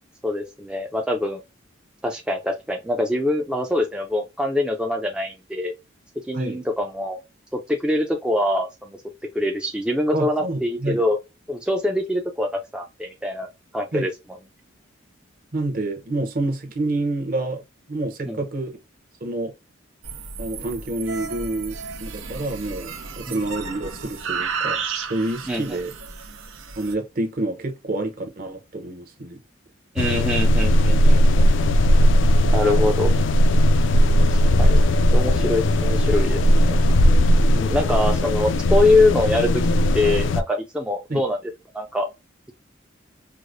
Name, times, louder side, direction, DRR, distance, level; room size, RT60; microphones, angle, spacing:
voice 1, 0.2-1.4 2.0-5.7 6.3-7.2 7.7-9.0 9.3-11.2 11.5-14.1 18.3-18.4 23.3-23.4 25.5-25.8 29.9-31.4 32.5-33.1 34.3-34.8 35.1-36.7 37.5-39.6 39.9-41.4 41.7-42.1, left 1 dB, 5° right, 0.3 m, -24 dB
voice 2, 6.3-6.7 10.1-11.0 13.9-14.1 15.5-17.6 17.9-18.7 19.2-19.5 20.4-24.8 25.1-25.9 26.8-29.4 41.1-41.2, right 2 dB, 45° right, 0.8 m, -28 dB
sound 1, 20.0-26.9, right 5 dB, 90° right, 0.7 m, -32 dB
sound 2, 30.0-40.4, equal, 65° left, 0.4 m, -17 dB
4.7 x 2.0 x 2.5 m
head